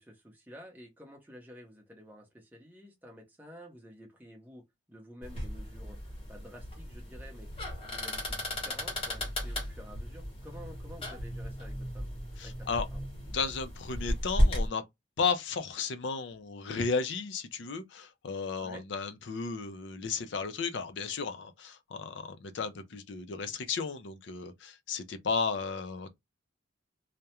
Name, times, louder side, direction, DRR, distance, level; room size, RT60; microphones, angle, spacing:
voice 1, 0.0-6.0 6.3-12.1 12.4-13.0 18.6-18.8, equal, 10° right, 0.7 m, -51 dB
sound 1, 5.2-14.7, equal, 30° left, 0.9 m, -34 dB
voice 2, 12.4-12.9 13.3-14.8 15.2-26.1, left 5 dB, 65° left, 0.4 m, -34 dB
2.3 x 2.1 x 2.8 m
head